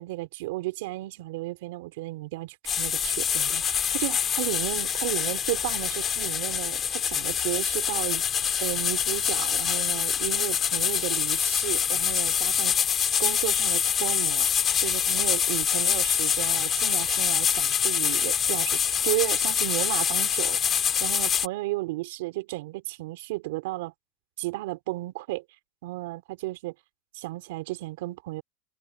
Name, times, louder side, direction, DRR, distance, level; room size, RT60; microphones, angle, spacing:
voice 1, 0.0-8.2 8.6-12.7 13.2-14.5 14.8-20.6 21.0-23.9 24.4-25.4 25.8-26.7 27.1-28.4, right 19 dB, 70° right, 3.2 m, -33 dB
sound 1, 2.7-21.5, left 8 dB, 30° left, 3.4 m, -25 dB
hypercardioid pair, 110°, 0 cm